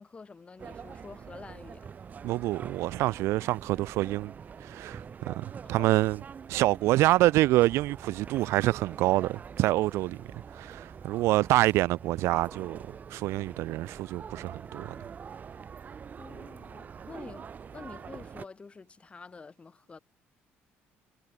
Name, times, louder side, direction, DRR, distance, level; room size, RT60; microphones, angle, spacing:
voice 1, 0.0-1.9 5.8-5.9 16.2-20.0, left 4 dB, 25° left, 5.5 m, -47 dB
sound 1, 0.6-18.4, right 6 dB, 40° right, 3.7 m, -45 dB
voice 2, 2.2-4.3 4.6-6.2 6.5-10.2 10.6-12.8 13.1-14.9, right 17 dB, 80° right, 1.7 m, -26 dB
cardioid pair, 110°, 5 cm